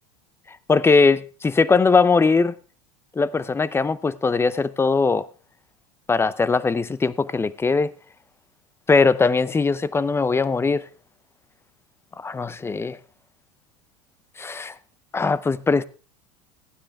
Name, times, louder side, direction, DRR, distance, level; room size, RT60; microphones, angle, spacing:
voice 1, 0.7-2.5 3.2-5.3 6.1-7.9 8.9-10.8 12.2-13.0 14.4-14.7 15.1-15.8, left 4 dB, 15° left, 0.6 m, -20 dB
15.0 x 9.9 x 3.5 m
supercardioid pair, 105°, 17 cm